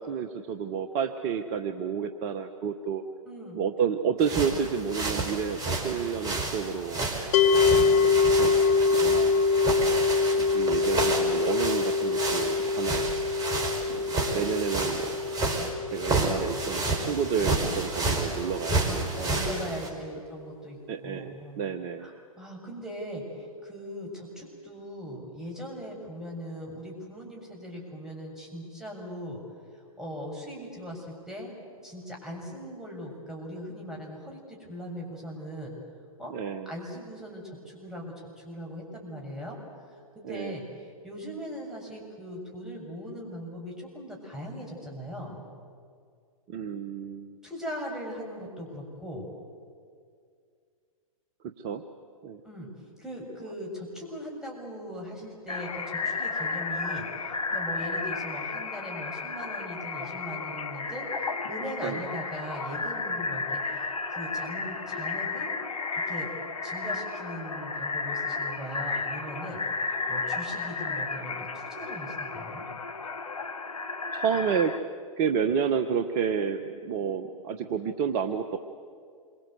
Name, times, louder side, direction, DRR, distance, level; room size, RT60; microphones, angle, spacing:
voice 1, 0.0-3.0 3.5-7.7 8.0-8.5 9.0-9.3 10.3-13.1 13.9-15.2 15.9-19.4 20.9-22.1 36.3-36.7 40.2-40.6 46.5-47.4 51.6-51.8 52.2-52.4 61.8-62.0 74.1-74.7 75.2-78.6, right 7 dB, 40° right, 8 dB, 1.3 m, -30 dB
voice 2, 3.3-3.6 19.2-21.6 22.0-29.4 29.7-31.6 31.8-35.7 36.2-36.3 36.7-39.6 39.9-45.4 47.4-49.3 52.4-52.7 53.0-65.5 66.1-66.3 66.6-69.6 70.1-72.6, equal, 5° right, -2 dB, 7.3 m, -39 dB
sound 1, 4.2-19.9, right 2 dB, 20° right, 4.7 m, -30 dB
sound 2, 7.3-18.5, left 4 dB, 50° left, 1.8 m, -25 dB
sound 3, 55.5-74.8, left 4 dB, 75° left, 1.4 m, -33 dB
28.0 x 24.0 x 8.1 m, 2.2 s
figure-of-eight pair, 110°, 18 cm